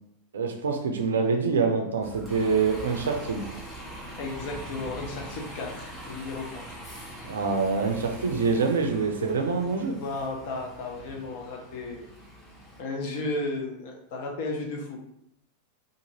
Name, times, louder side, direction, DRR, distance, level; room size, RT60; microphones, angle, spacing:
voice 1, 0.3-3.5 7.2-10.0, right 4 dB, 65° right, 4 dB, 0.4 m, -25 dB
Bus, 2.0-12.8, right 1 dB, 10° left, 0.9 m, -43 dB
voice 2, 4.2-6.8 10.0-12.0 12.8-15.0, left 2 dB, 50° left, 1 dB, 0.6 m, -34 dB
2.5 x 2.5 x 2.8 m, 0.75 s
figure-of-eight pair, 90°, 0 cm